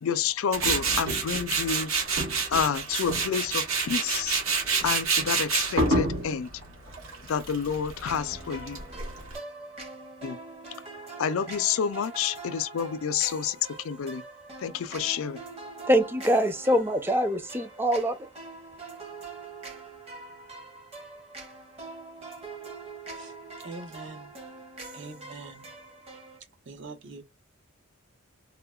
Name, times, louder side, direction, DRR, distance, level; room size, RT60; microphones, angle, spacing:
voice 1, 0.0-1.9 2.5-4.4 4.8-6.5 7.3-8.8 10.2-10.4 11.2-13.6 13.8-14.2 14.6-15.4, left 7 dB, 75° left, 0.4 m, -29 dB
Tools, 0.5-9.4, right 3 dB, 75° right, 1.3 m, -28 dB
sound 1, 8.0-26.4, right 3 dB, 30° right, 1.1 m, -43 dB
voice 2, 15.9-18.3, equal, 10° right, 0.5 m, -24 dB
voice 3, 23.1-24.3 24.9-25.7 26.7-27.2, right 3 dB, 60° right, 0.9 m, -43 dB
3.7 x 2.1 x 2.2 m
head